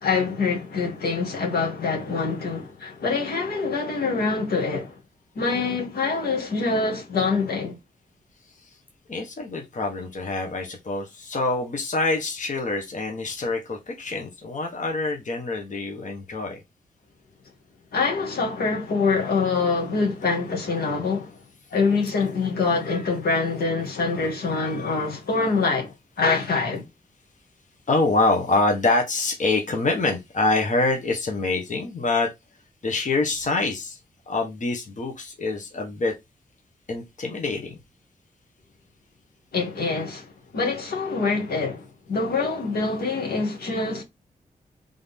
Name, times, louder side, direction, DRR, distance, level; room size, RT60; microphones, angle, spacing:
voice 1, 0.0-5.0 5.4-7.8 17.9-21.4 21.7-26.8 39.5-44.0, left 4 dB, 85° left, 1.8 m, -25 dB
voice 2, 9.1-16.6 27.9-32.3 32.8-34.0 34.3-36.1 36.9-37.8, left 3 dB, 55° left, 1.3 m, -25 dB
3.9 x 3.6 x 3.6 m
cardioid pair, 70°, 16 cm